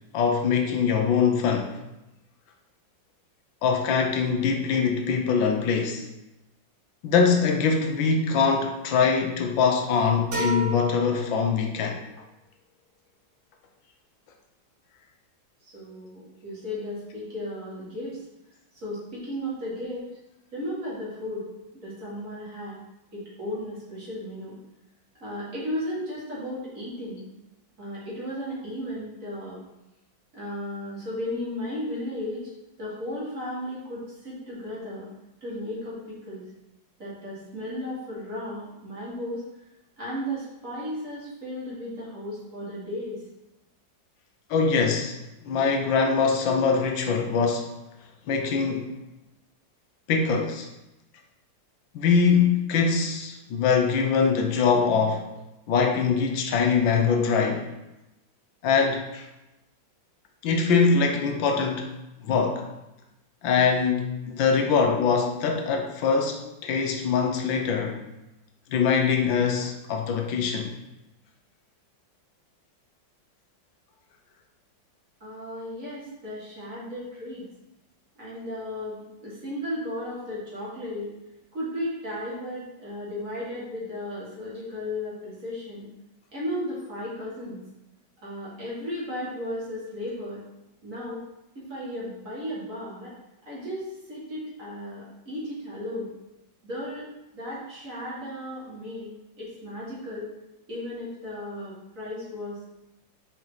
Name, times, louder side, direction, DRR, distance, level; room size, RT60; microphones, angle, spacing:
voice 1, 0.1-1.8 3.6-6.1 7.0-12.0 44.5-45.2 45.4-47.7 48.3-48.9 50.1-50.7 51.9-55.3 55.7-57.7 58.6-59.3 60.4-61.9 62.2-62.7 63.4-68.0 68.7-70.7, left 5 dB, 80° left, 3 dB, 1.5 m, -23 dB
sound 1, 10.3-12.1, right 1 dB, 70° right, 2.3 m, -33 dB
voice 2, 15.6-18.2 18.7-20.1 20.5-21.5 21.8-22.8 23.1-24.5 25.2-27.2 27.8-29.6 30.3-32.5 32.8-35.1 35.4-36.4 37.0-39.5 40.0-43.2 75.2-77.5 78.2-81.1 81.5-85.9 86.3-87.6 88.2-90.4 90.8-91.2 91.6-93.1 93.5-96.1 96.6-97.0 97.3-100.3 100.7-102.6, left 1 dB, 45° right, -7 dB, 2.5 m, -35 dB
6.0 x 4.5 x 4.0 m, 0.94 s
omnidirectional pair, 2.1 m